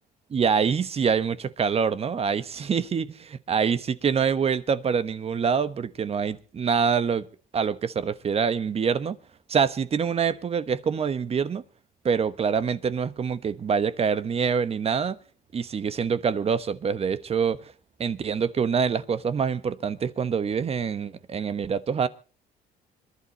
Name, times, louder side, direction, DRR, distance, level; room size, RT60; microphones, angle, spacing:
voice 1, 0.3-7.3 7.5-9.2 9.5-11.6 12.0-15.2 15.5-17.7 18.0-22.1, right 6 dB, 35° right, 1.2 m, -25 dB
26.0 x 11.5 x 3.0 m
cardioid pair, 110°, 17 cm